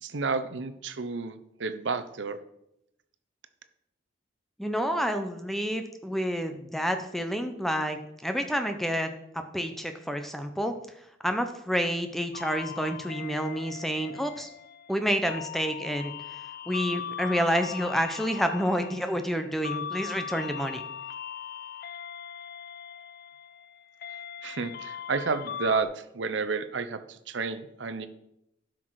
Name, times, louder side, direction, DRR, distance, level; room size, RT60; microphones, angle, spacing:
voice 1, 0.0-2.4 24.4-28.1, right 4 dB, 75° right, 11 dB, 0.7 m, -31 dB
voice 2, 4.6-9.1 9.3-10.7 11.2-14.5 14.9-16.1 16.7-20.8, equal, ahead, 7 dB, 0.7 m, -29 dB
sound 1, 12.3-25.8, left 8 dB, 50° left, 0.4 m, -40 dB
11.5 x 6.1 x 4.7 m, 0.80 s
head